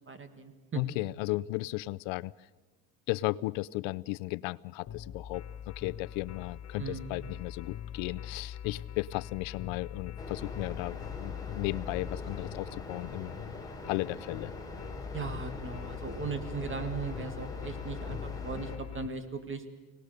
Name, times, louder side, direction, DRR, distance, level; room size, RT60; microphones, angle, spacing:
voice 1, 0.1-0.8 6.8-7.1 15.1-19.6, right 5 dB, 25° right, 8 dB, 2.1 m, -38 dB
voice 2, 0.7-2.3 3.1-13.4 13.9-14.5, left 20 dB, 80° left, 20 dB, 0.7 m, -35 dB
sound 1, 4.9-19.1, left 9 dB, 35° left, 1.0 m, -42 dB
sound 2, 10.2-18.8, left 2 dB, 10° left, 4.0 m, -43 dB
29.0 x 19.0 x 6.7 m, 1.3 s
cardioid pair, 115°, 45 cm